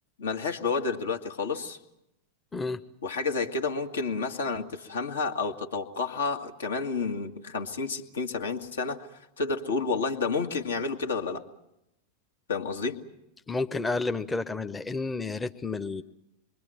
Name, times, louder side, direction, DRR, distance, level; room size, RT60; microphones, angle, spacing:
voice 1, 0.2-1.8 3.0-9.1 9.4-11.4 12.5-13.0, left 4 dB, 65° left, 5 dB, 2.0 m, -30 dB
voice 2, 13.5-16.0, left 3 dB, 10° left, 9 dB, 0.9 m, -30 dB
27.0 x 23.0 x 7.8 m, 0.86 s
figure-of-eight pair, 90°, 0 cm